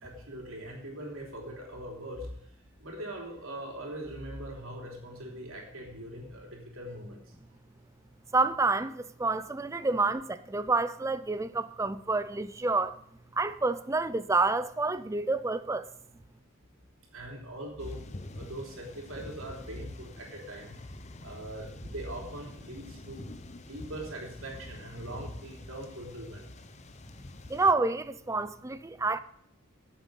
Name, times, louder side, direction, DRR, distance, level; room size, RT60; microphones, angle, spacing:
voice 1, 0.0-2.3 2.8-7.2 9.9-10.0 17.1-18.0 18.3-20.7 21.2-23.2 23.7-26.4, right 1 dB, 80° right, 3.2 m, -41 dB
voice 2, 8.3-13.0 13.3-15.9 27.5-29.2, right 3 dB, 15° right, 0.4 m, -28 dB
sound 1, 17.8-27.7, left 2 dB, 35° left, 0.8 m, -46 dB
9.2 x 7.3 x 7.5 m
head